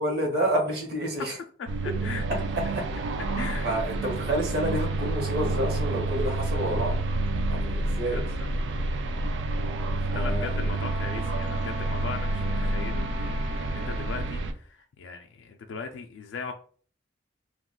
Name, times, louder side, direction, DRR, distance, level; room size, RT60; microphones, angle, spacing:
voice 1, 0.0-1.4 2.3-2.8 3.6-7.0 7.5-8.2 10.1-10.7, right 1 dB, 55° right, 1.0 m, -29 dB
sound 1, 1.7-14.5, right 2 dB, 75° right, 0.4 m, -29 dB
voice 2, 1.8-2.2 3.4-3.7 8.1-8.2 10.1-16.5, left 5 dB, 80° left, 0.3 m, -38 dB
Wind instrument woodwind instrument, 10.7-14.4, right 1 dB, 5° right, 0.5 m, -40 dB
2.3 x 2.3 x 3.5 m
head